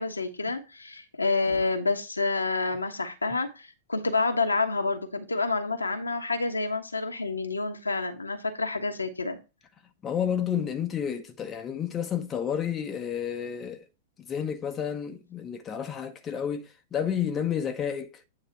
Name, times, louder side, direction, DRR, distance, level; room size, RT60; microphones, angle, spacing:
voice 1, 0.0-9.4, left 3 dB, 80° left, 1.2 m, -28 dB
voice 2, 10.0-13.8 14.2-18.1, left 8 dB, 25° left, 0.9 m, -30 dB
9.2 x 3.3 x 4.6 m
figure-of-eight pair, 95°, 0 cm